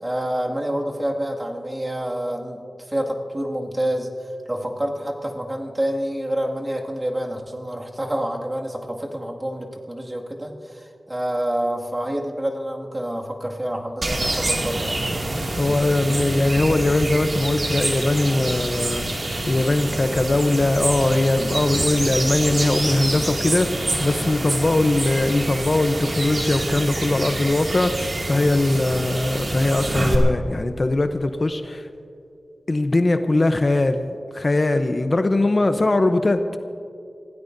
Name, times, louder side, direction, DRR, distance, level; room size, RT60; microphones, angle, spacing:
voice 1, 0.0-4.1 4.5-15.0, right 1 dB, 25° right, -1 dB, 2.1 m, -27 dB
sound 1, 14.0-30.2, right 2 dB, 55° right, 2.3 m, -26 dB
voice 2, 15.6-31.9 32.7-36.4, left 2 dB, 45° left, 8 dB, 0.7 m, -21 dB
25.5 x 16.5 x 2.7 m, 2.5 s
cardioid pair, 55°, 0 cm